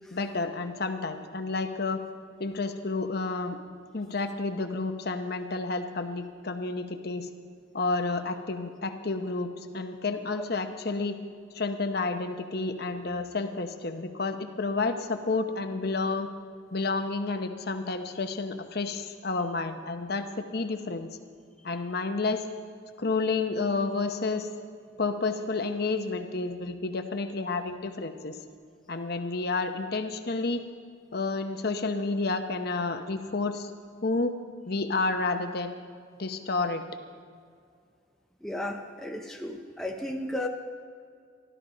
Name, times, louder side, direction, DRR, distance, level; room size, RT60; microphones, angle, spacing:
voice 1, 0.1-2.0 2.4-3.6 3.9-7.3 7.7-9.5 9.7-11.2 11.5-16.3 16.7-21.1 21.6-22.4 23.0-24.5 25.0-28.4 28.9-30.6 31.1-33.7 34.0-34.3 34.7-35.8 36.2-36.8, left 3 dB, 50° left, 7 dB, 0.9 m, -30 dB
voice 2, 38.4-40.5, left 1 dB, ahead, 1 dB, 0.7 m, -34 dB
13.5 x 13.0 x 5.1 m, 2.2 s
head